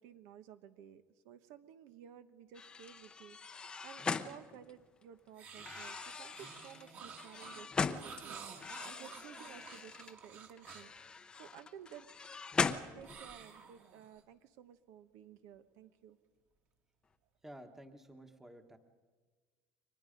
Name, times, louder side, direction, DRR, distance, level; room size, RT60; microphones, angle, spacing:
voice 1, 0.0-3.4 3.8-10.9 11.4-12.1 12.6-16.2, right 9 dB, 65° right, 11 dB, 1.1 m, -55 dB
sound 1, 2.5-5.0 5.5-8.2 8.6-10.1 10.6-13.4, left 5 dB, 15° left, 0.7 m, -40 dB
sound 2, 5.4-11.0 13.0-14.2, right 6 dB, 35° right, 2.1 m, -51 dB
voice 2, 17.4-18.8, right 1 dB, 5° right, 6 dB, 1.3 m, -52 dB
29.5 x 24.5 x 5.2 m, 1.4 s
cardioid pair, 170°, 6 cm